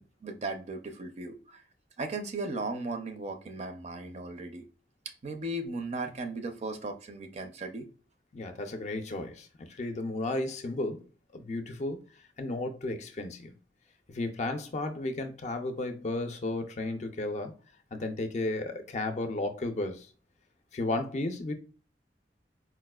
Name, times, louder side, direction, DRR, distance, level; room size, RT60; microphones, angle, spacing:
voice 1, 0.0-1.6 2.0-4.7 5.2-7.9, right 2 dB, 40° right, 0.4 m, -36 dB
voice 2, 8.3-11.0 11.3-12.0 12.4-13.5 14.1-17.5 17.9-20.1 20.7-21.5, left 2 dB, 40° left, 0.4 m, -33 dB
4.1 x 2.3 x 2.2 m
head